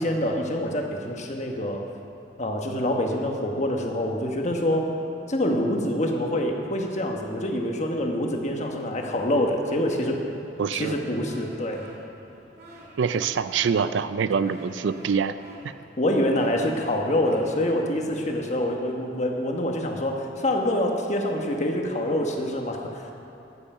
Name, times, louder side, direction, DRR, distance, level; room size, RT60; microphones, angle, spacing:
voice 1, 0.0-1.9 2.4-4.9 5.3-10.2 10.7-11.9 16.0-23.1, left 1 dB, 40° left, 2 dB, 1.3 m, -26 dB
sound 1, 10.3-18.6, right 1 dB, 60° right, 2.5 m, -49 dB
voice 2, 10.6-11.0 13.0-15.3, right 6 dB, 85° right, 13 dB, 0.4 m, -25 dB
14.0 x 8.4 x 5.6 m, 3.0 s
head